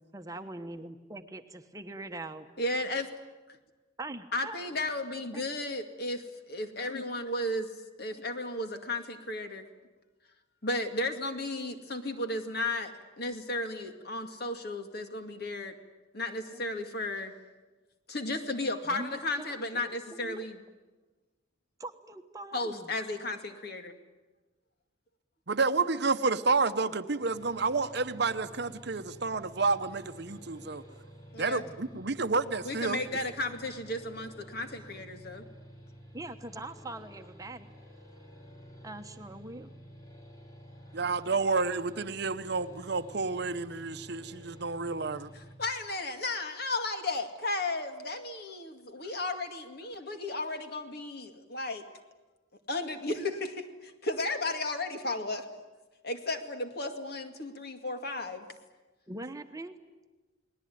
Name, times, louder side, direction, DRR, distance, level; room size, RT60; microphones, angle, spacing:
voice 1, 0.1-2.5 4.0-4.6 5.3-5.4 16.5-16.6 18.8-20.4 21.8-22.9 36.1-37.7 38.8-39.7 59.1-59.8, right 2 dB, 15° right, 1.2 m, -42 dB
voice 2, 2.6-3.1 4.3-7.7 8.0-9.6 10.6-15.8 16.1-17.3 18.1-20.6 22.5-24.0 31.3-31.6 32.6-35.4 45.3-51.8 52.7-55.5 56.0-58.5, left 2 dB, 50° left, 2.2 m, -34 dB
voice 3, 25.5-30.8 31.4-33.0 40.9-45.3, right 4 dB, 55° right, 0.9 m, -30 dB
sound 1, 27.2-45.6, equal, 20° left, 3.5 m, -51 dB
30.0 x 20.0 x 9.4 m
head